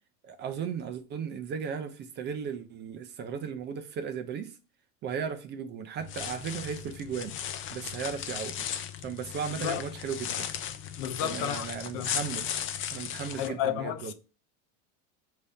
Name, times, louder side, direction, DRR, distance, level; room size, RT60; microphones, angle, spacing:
voice 1, 0.2-4.5 5.0-7.4 7.7-8.7 9.0-10.5 11.2-12.5 12.9-14.1, right 7 dB, 30° right, 0.4 m, -36 dB
sound 1, 6.0-13.5, left 9 dB, 35° left, 0.5 m, -36 dB
voice 2, 11.0-11.7 11.9-12.2 13.4-14.1, left 11 dB, 65° left, 0.7 m, -32 dB
5.1 x 2.7 x 3.5 m
supercardioid pair, 130°, 37 cm